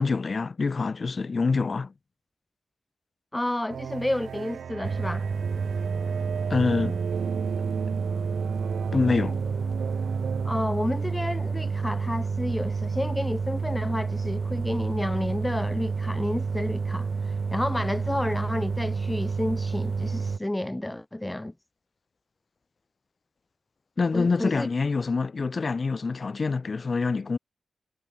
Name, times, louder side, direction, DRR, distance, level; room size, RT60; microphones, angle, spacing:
voice 1, 0.0-1.9 6.5-7.0 8.9-9.4 24.0-27.4, left 4 dB, 35° left, 1.0 m, -26 dB
voice 2, 3.3-5.3 10.4-21.5 24.1-24.7, left 1 dB, 10° left, 0.6 m, -30 dB
sound 1, 3.7-10.6, right 8 dB, 90° right, 0.6 m, -36 dB
sound 2, 4.8-20.4, right 5 dB, 40° right, 0.3 m, -29 dB
wide cardioid pair, 160°, 0 cm